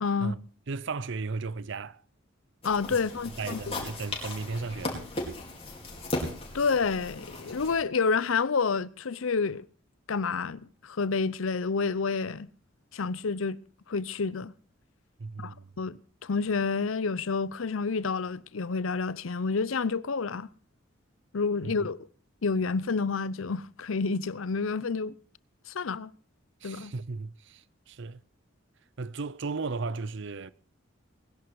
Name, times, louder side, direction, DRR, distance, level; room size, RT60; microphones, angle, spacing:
voice 1, 0.0-0.3 2.6-3.9 6.5-9.6 10.1-12.5 12.9-13.6 13.9-14.5 15.4-20.5 21.3-22.0 22.4-25.1 25.7-26.1 26.6-26.9, left 4 dB, 85° left, 0.7 m, -29 dB
voice 2, 0.7-2.0 3.4-5.0 15.2-15.7 21.6-21.7 26.6-28.2 29.0-30.5, right 4 dB, 65° right, 0.6 m, -35 dB
sound 1, 2.6-7.8, left 2 dB, 30° left, 4.8 m, -37 dB
20.5 x 11.0 x 4.7 m
head